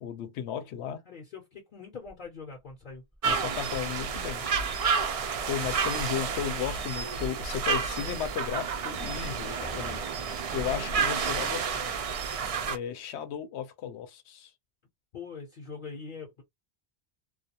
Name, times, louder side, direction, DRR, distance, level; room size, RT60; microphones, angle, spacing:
voice 1, 0.0-1.0 3.2-4.5 5.5-10.0 10.5-11.9 12.7-14.5, left 9 dB, 85° left, 0.9 m, -35 dB
voice 2, 1.1-3.0 15.1-16.4, left 5 dB, 55° left, 0.8 m, -43 dB
sound 1, 2.0-3.3 3.6-5.2 5.5-6.5 6.9-7.6 8.1-8.2 9.0-10.4 11.3-11.4 11.9-12.5, left 1 dB, 5° left, 0.6 m, -52 dB
sound 2, 3.2-12.8, right 5 dB, 60° right, 0.3 m, -30 dB
2.3 x 2.2 x 2.7 m
omnidirectional pair, 1.1 m